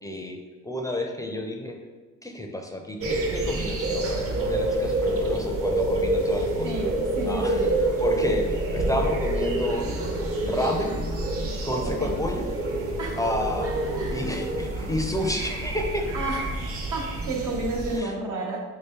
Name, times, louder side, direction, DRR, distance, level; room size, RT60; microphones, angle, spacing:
voice 1, 0.0-0.4 0.6-1.8 2.2-6.9 7.3-7.7 8.0-9.9 10.4-11.0 11.6-12.5 13.2-13.7 14.1-16.1 17.9-18.1, left 1 dB, 10° left, 2 dB, 0.4 m, -30 dB
sound 1, 3.0-18.0, right 1 dB, 50° right, 0.6 m, -27 dB
voice 2, 6.6-7.7 12.0-12.2 13.0-13.2 13.9-14.2 16.1-18.6, right 2 dB, 85° right, -1 dB, 0.8 m, -31 dB
3.1 x 2.8 x 3.6 m, 1.4 s
cardioid pair, 90°, 30 cm